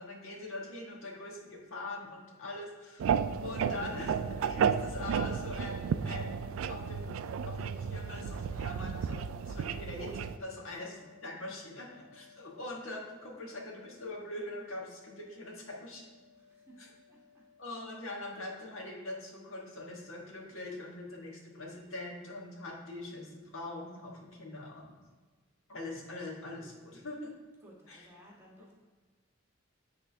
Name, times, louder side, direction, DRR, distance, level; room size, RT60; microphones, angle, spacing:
voice 1, 0.0-3.1 3.4-7.1 7.5-16.0 16.8-16.9 17.6-25.0 25.7-27.3 27.9-28.1, left 2 dB, 90° left, -2 dB, 1.5 m, -43 dB
sound 1, 3.0-10.4, right 7 dB, 90° right, 0.3 m, -33 dB
sound 2, 3.1-20.4, left 5 dB, 55° left, 1.7 m, -55 dB
voice 2, 10.6-11.1 16.4-17.4 27.6-28.7, equal, 10° right, -5 dB, 1.5 m, -58 dB
9.4 x 3.8 x 3.4 m, 1.4 s
head